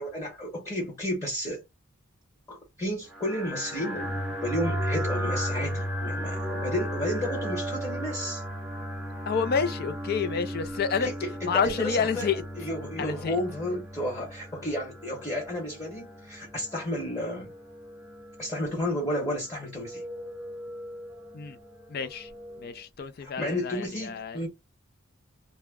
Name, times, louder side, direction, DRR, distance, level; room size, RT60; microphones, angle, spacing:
voice 1, 0.0-1.6 2.5-8.4 10.9-17.5 18.4-20.0 23.2-24.5, equal, 15° left, 1.1 m, -32 dB
sound 1, 3.1-22.8, equal, 5° right, 0.8 m, -36 dB
voice 2, 9.3-11.1 11.5-12.4 13.0-13.3 21.3-21.6 21.9-22.3 22.6-24.4, left 6 dB, 50° left, 0.4 m, -29 dB
2.2 x 2.0 x 3.4 m
head